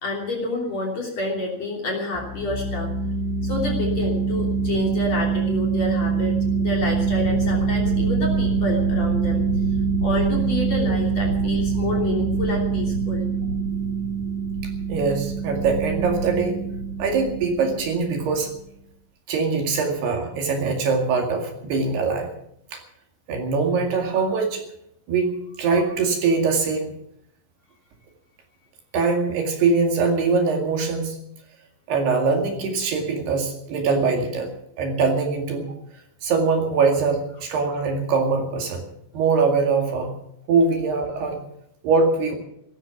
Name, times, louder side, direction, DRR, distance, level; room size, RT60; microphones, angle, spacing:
voice 1, 0.0-2.9 3.4-9.4 10.0-13.3, left 2 dB, 40° left, 0 dB, 3.6 m, -28 dB
sound 1, 2.2-18.4, right 5 dB, 60° left, 4.0 m, -24 dB
voice 2, 14.9-16.5 17.0-18.5 19.3-22.3 22.7-22.8 23.3-24.6 25.1-25.3 25.6-26.9 28.9-31.2 31.9-34.5 34.8-35.7 36.2-38.8 39.1-40.1 40.5-41.4 41.8-42.4, right 4 dB, 60° right, 2 dB, 3.9 m, -22 dB
17.5 x 14.0 x 6.0 m, 0.75 s
omnidirectional pair, 5.7 m